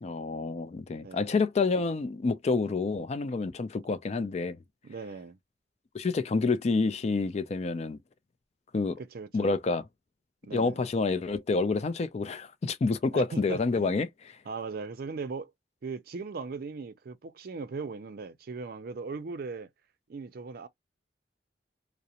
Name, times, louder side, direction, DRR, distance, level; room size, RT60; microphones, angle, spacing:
voice 1, 0.0-4.6 5.9-8.0 8.7-9.0 9.3-9.9 10.5-14.4, left 4 dB, 40° left, 0.3 m, -28 dB
voice 2, 4.8-5.4 9.0-9.6 10.4-10.8 13.1-13.9 14.5-15.5 15.8-19.7 20.1-20.7, right 4 dB, 55° right, 0.4 m, -38 dB
2.4 x 2.0 x 2.8 m
head